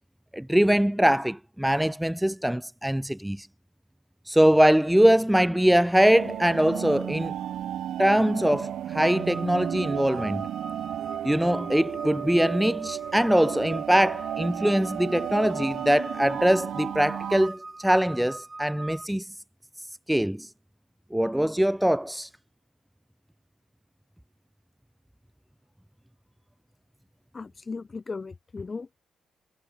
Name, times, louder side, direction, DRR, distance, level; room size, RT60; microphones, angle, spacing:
voice 1, 0.3-3.5 4.3-7.3 8.0-10.5 11.2-19.3 20.1-20.5 21.1-22.3, equal, 5° right, 0.4 m, -22 dB
sound 1, 6.1-17.5, right 11 dB, 70° right, 0.8 m, -34 dB
sound 2, 9.0-19.1, right 2 dB, 20° right, 1.3 m, -42 dB
voice 2, 27.3-29.0, left 4 dB, 30° left, 1.8 m, -37 dB
cardioid pair, 90°, 0 cm